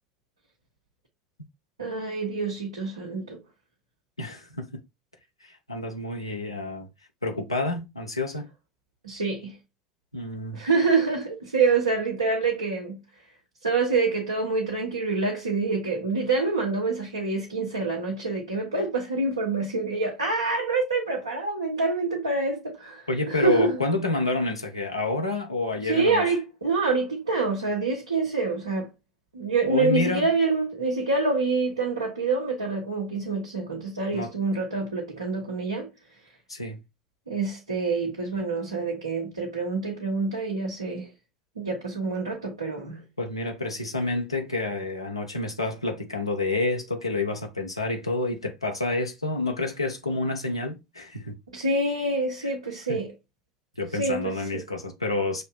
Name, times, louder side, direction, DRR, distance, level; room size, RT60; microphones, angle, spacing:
voice 1, 1.8-3.4 9.0-9.6 10.5-13.0 13.6-23.8 25.9-28.9 29.3-35.9 37.3-41.1 41.6-43.0 51.5-53.1 53.9-54.6, right 3 dB, 80° right, 1.1 m, -26 dB
voice 2, 4.2-4.7 5.4-6.9 7.2-8.5 10.1-10.6 23.1-26.2 29.7-30.3 34.1-34.3 36.5-36.8 43.2-51.4 52.9-53.0 53.8-55.4, left 2 dB, 85° left, 0.7 m, -29 dB
6.3 x 2.7 x 2.2 m
figure-of-eight pair, 70°, 3 cm